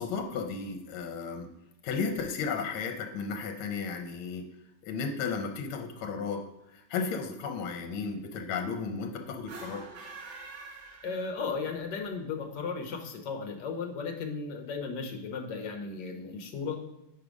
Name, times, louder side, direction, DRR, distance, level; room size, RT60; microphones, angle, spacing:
voice 1, 0.0-1.5 1.8-4.5 4.8-6.4 6.7-9.9, left 5 dB, 75° left, 4 dB, 1.5 m, -34 dB
sound 1, 9.4-11.7, right 3 dB, 65° right, 1.8 m, -46 dB
voice 2, 11.0-16.8, left 5 dB, 60° left, 3 dB, 1.3 m, -35 dB
5.0 x 4.8 x 5.2 m, 0.90 s
omnidirectional pair, 2.4 m